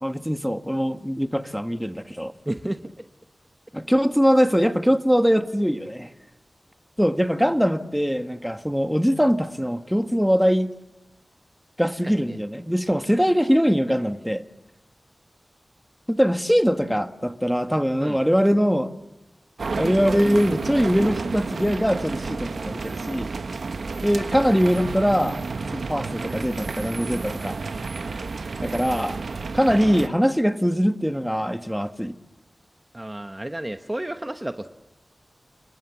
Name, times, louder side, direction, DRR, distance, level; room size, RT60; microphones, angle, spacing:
voice 1, 0.0-2.3 3.7-6.1 7.0-10.7 11.8-14.4 16.1-18.9 19.8-23.3 24.0-25.4 25.7-27.6 28.6-29.2 29.5-32.1, equal, ahead, 1.4 m, -22 dB
voice 2, 2.5-2.8 11.9-12.4 18.0-18.2 32.9-34.7, right 1 dB, 20° right, 1.0 m, -31 dB
sound 1, 19.6-30.1, right 4 dB, 85° right, 0.9 m, -31 dB
29.5 x 22.0 x 7.2 m
wide cardioid pair, 75°, 0 cm